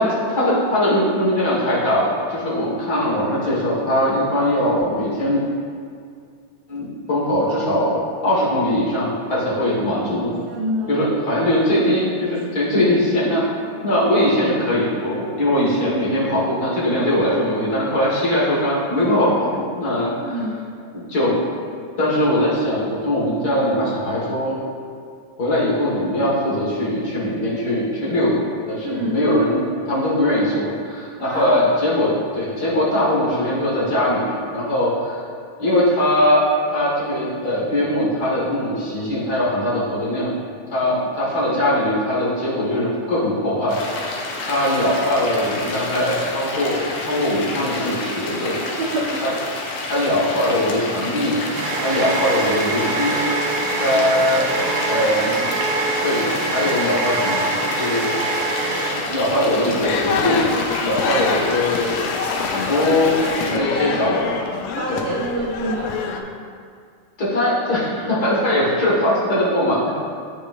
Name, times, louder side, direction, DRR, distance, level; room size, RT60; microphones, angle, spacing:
voice 1, 0.0-5.4 6.7-8.0 8.2-10.3 10.9-13.4 13.8-20.4 20.9-21.3 22.0-24.6 25.4-29.6 29.8-35.2 35.6-36.4 36.7-40.4 40.7-44.1 44.5-48.5 49.2-49.3 49.9-51.4 51.8-53.2 53.8-54.4 54.8-55.5 56.0-58.1 59.1-60.4 60.8-62.0 62.5-64.3 64.9-65.0 67.2-69.9, left 1 dB, 45° left, -7 dB, 1.4 m, -21 dB
voice 2, 10.4-11.0 20.2-20.6 28.8-29.2 31.2-31.6 48.8-49.5 63.2-64.0 64.8-66.3, right 1 dB, 85° right, -4 dB, 1.2 m, -27 dB
sound 1, 43.7-63.5, left 2 dB, 70° left, 1.7 m, -29 dB
sound 2, 50.7-59.4, right 2 dB, 65° right, 1.4 m, -24 dB
sound 3, 59.8-66.2, left 5 dB, 90° left, 1.4 m, -26 dB
8.1 x 6.7 x 2.4 m, 2.2 s
omnidirectional pair, 3.5 m